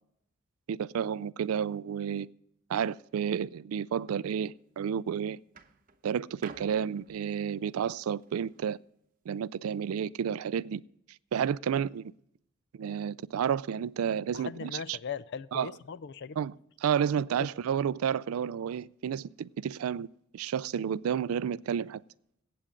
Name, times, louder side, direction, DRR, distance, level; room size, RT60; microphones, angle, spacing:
voice 1, 0.7-2.3 2.7-5.4 6.0-8.8 9.3-10.8 11.3-12.1 12.7-15.0 15.5-15.7 16.4-16.6 16.8-20.1 20.3-22.0, right 8 dB, 80° right, 0.3 m, -31 dB
sound 1, 4.5-4.9 5.5-8.8 9.6-9.7, right 4 dB, 40° right, 0.8 m, -52 dB
voice 2, 14.3-16.4, left 6 dB, 55° left, 0.4 m, -39 dB
15.0 x 8.6 x 3.8 m
head